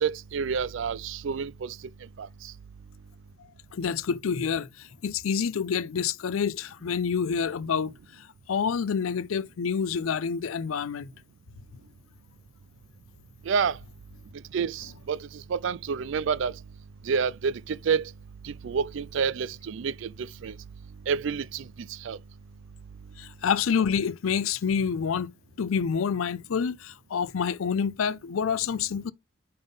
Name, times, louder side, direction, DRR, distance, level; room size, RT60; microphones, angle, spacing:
voice 1, 0.0-1.8 2.2-2.3 13.5-13.8 14.5-16.5 17.0-18.1 18.4-20.5 21.1-22.2, right 6 dB, 65° right, 0.4 m, -29 dB
voice 2, 3.7-7.9 8.5-11.1 23.2-25.3 25.6-29.1, left 6 dB, 80° left, 0.5 m, -27 dB
5.4 x 5.4 x 3.5 m
head